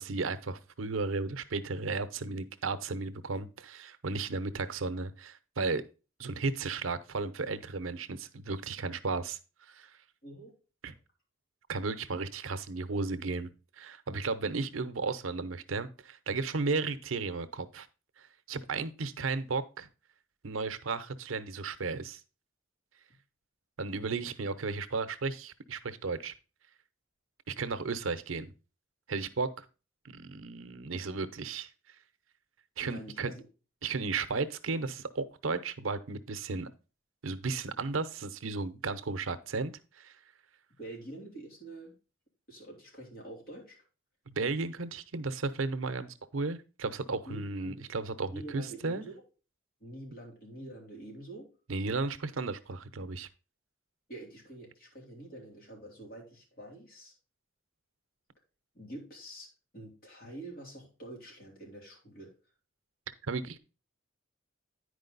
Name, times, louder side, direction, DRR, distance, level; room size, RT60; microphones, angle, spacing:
voice 1, 0.0-5.8 6.2-9.4 9.7-10.0 10.8-10.9 11.7-13.5 13.8-17.9 18.2-19.9 20.4-22.2 23.8-26.3 27.5-28.5 29.1-29.6 30.0-31.7 32.8-33.3 33.8-36.7 37.2-40.2 44.3-49.1 51.7-53.3 63.2-63.6, right 4 dB, 90° right, 12 dB, 0.7 m, -34 dB
voice 2, 10.2-10.5 32.8-33.4 40.8-41.9 42.5-43.8 47.3-47.9 48.3-49.2 49.8-51.5 54.1-57.1 58.7-59.5 59.7-62.3, right 1 dB, 50° left, -1 dB, 3.4 m, -46 dB
9.8 x 5.0 x 3.9 m, 0.32 s
head